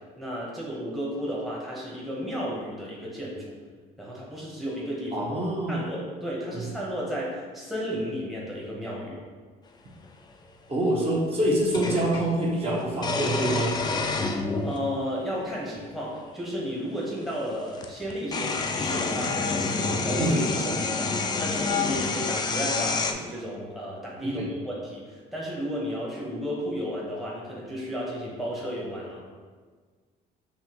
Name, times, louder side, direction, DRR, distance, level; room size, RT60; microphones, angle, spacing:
voice 1, 0.2-3.6 4.0-5.3 5.7-9.2 14.6-29.2, equal, ahead, -6 dB, 0.9 m, -33 dB
voice 2, 5.1-5.8 6.5-6.7 10.7-13.7 20.2-20.5 24.2-24.5, right 1 dB, 35° right, -4 dB, 1.1 m, -26 dB
sound 1, 10.0-10.1 11.7-12.3 13.0-14.8 15.7-15.8 17.3-17.4 17.7-23.1, left 4 dB, 25° left, 0.4 m, -28 dB
5.7 x 2.8 x 2.9 m, 1.5 s
cardioid pair, 110°, 17 cm